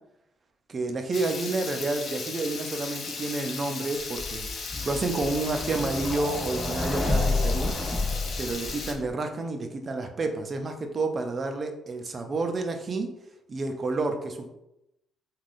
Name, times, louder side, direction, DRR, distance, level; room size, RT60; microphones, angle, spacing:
voice 1, 0.7-7.7 8.4-13.1 13.5-14.5, right 3 dB, 40° right, 5 dB, 0.4 m, -30 dB
Water tap faucet / Liquid, 1.1-8.9, left 4 dB, 60° left, 0.5 m, -36 dB
sound 1, 4.2-9.1, left 2 dB, 20° left, 0.9 m, -30 dB
3.4 x 2.3 x 2.5 m, 0.88 s
cardioid pair, 90°, 0 cm